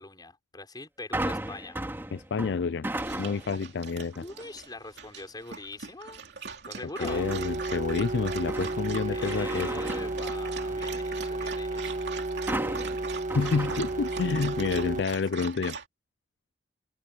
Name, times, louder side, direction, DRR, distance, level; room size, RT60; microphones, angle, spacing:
voice 1, 0.0-1.8 4.1-6.2 6.7-7.2 9.1-12.1, left 2 dB, 25° left, 5.2 m, -42 dB
sound 1, 1.1-3.6 4.1-4.5 7.0-7.6 8.1-10.9 12.5-14.4 14.8-14.9, right 1 dB, 15° right, 2.5 m, -36 dB
voice 2, 2.1-2.9 3.2-4.2 7.0-9.7 13.4-15.8, left 5 dB, 70° left, 0.4 m, -29 dB
Dog, 3.0-15.9, right 5 dB, 65° right, 2.9 m, -41 dB
sound 2, 7.0-15.0, right 2 dB, 45° right, 1.7 m, -33 dB
open air
head